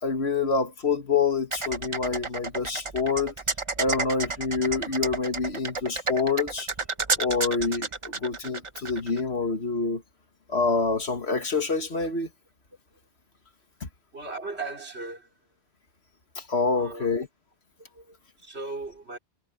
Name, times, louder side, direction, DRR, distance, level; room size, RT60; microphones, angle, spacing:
voice 1, 0.0-3.3 3.8-6.7 7.2-10.0 10.5-12.3 13.8-13.9 16.4-17.3, left 4 dB, 85° left, 2.2 m, -27 dB
sound 1, 1.5-9.2, right 4 dB, 30° right, 1.0 m, -31 dB
voice 2, 14.1-15.3 16.7-17.1 17.9-19.2, right 3 dB, 85° right, 3.5 m, -37 dB
omnidirectional pair, 1.1 m